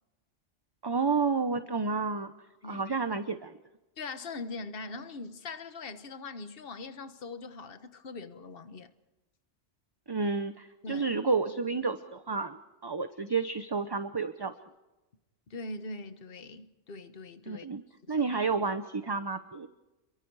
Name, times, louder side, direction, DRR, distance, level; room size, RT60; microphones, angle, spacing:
voice 1, 0.8-2.3 2.6-3.6 10.1-12.6 12.8-14.5 17.5-17.8 18.1-19.7, right 4 dB, 25° right, 0.8 m, -30 dB
voice 2, 4.0-8.9 10.8-11.1 15.5-17.7 18.1-18.3, left 3 dB, 50° left, 1.5 m, -42 dB
30.0 x 23.0 x 4.8 m
omnidirectional pair, 1.2 m